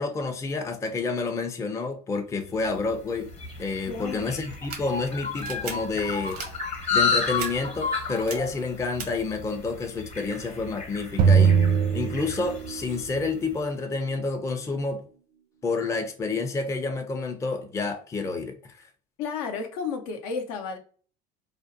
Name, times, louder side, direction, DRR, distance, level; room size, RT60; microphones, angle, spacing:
voice 1, 0.0-3.3 3.6-6.4 6.9-11.6 11.9-15.1 15.6-18.8, left 3 dB, 15° left, 0.4 m, -29 dB
sound 1, 2.7-13.3, left 4 dB, 35° left, 0.9 m, -32 dB
voice 2, 3.9-4.4 19.2-20.8, left 5 dB, 80° left, 0.6 m, -32 dB
sound 2, 4.5-4.8 5.4-5.7 6.3-6.5 7.4-7.5 8.1-8.3 9.0-9.1, right 6 dB, 85° right, 0.8 m, -36 dB
sound 3, 11.2-13.0, right 6 dB, 55° right, 0.5 m, -20 dB
2.5 x 2.0 x 2.5 m
supercardioid pair, 85°, 19 cm